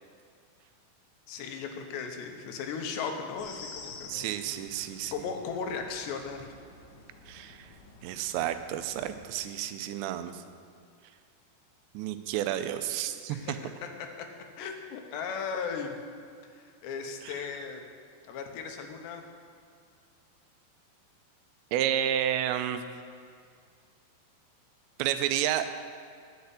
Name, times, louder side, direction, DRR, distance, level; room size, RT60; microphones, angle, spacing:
voice 1, 1.3-4.4 5.1-6.5 13.3-13.5 14.2-14.3 14.6-16.0 16.5-17.8 18.2-19.2, left 6 dB, 80° left, 4 dB, 3.1 m, -36 dB
sound 1, 3.4-9.3, left 4 dB, 60° left, 2.0 m, -50 dB
voice 2, 4.1-5.1 7.3-7.7 8.0-10.4 11.9-13.6 17.2-17.3 21.7-22.8 25.0-25.8, right 11 dB, 90° right, 10 dB, 2.9 m, -31 dB
11.0 x 6.7 x 8.1 m, 2.2 s
omnidirectional pair, 5.0 m